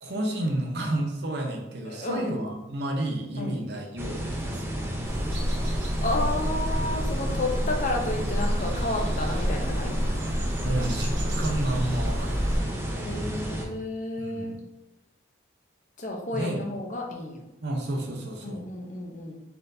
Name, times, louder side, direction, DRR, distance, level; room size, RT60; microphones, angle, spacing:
voice 1, 0.0-4.8 10.6-13.0 14.2-14.6 16.3-16.6 17.6-18.6, right 1 dB, 60° right, 1 dB, 0.7 m, -31 dB
voice 2, 1.9-2.3 3.4-3.6 6.0-10.0 13.0-14.6 16.0-17.4 18.4-19.4, left 2 dB, 40° left, 1 dB, 0.7 m, -31 dB
sound 1, 4.0-13.7, equal, 15° right, 0.5 m, -32 dB
sound 2, 5.0-12.6, equal, 90° right, 1.0 m, -29 dB
4.2 x 3.7 x 2.6 m, 0.92 s
head